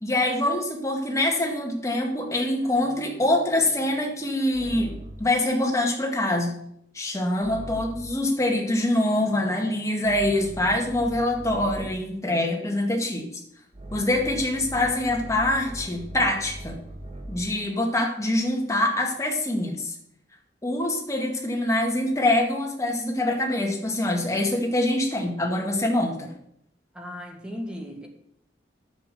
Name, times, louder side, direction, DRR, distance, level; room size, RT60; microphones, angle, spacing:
voice 1, 0.0-6.5 6.9-13.3 13.9-16.8 17.3-19.9 20.6-26.3, left 1 dB, 20° left, 2.1 m, -24 dB
sound 1, 2.6-5.4 7.4-8.2 9.1-12.1 13.7-17.6, right 1 dB, 35° right, 1.6 m, -41 dB
voice 2, 26.9-28.1, equal, 5° right, 1.7 m, -36 dB
10.0 x 7.5 x 6.8 m
head